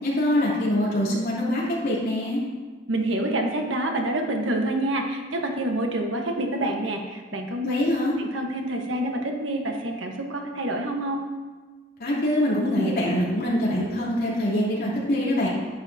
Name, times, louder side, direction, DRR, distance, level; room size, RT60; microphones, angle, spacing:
voice 1, 0.0-2.4 7.6-8.1 12.0-15.5, left 1 dB, 55° left, -7 dB, 3.3 m, -24 dB
voice 2, 2.9-7.8 8.2-11.2, right 1 dB, 90° right, 2 dB, 1.3 m, -27 dB
10.5 x 10.0 x 2.8 m, 1.4 s
head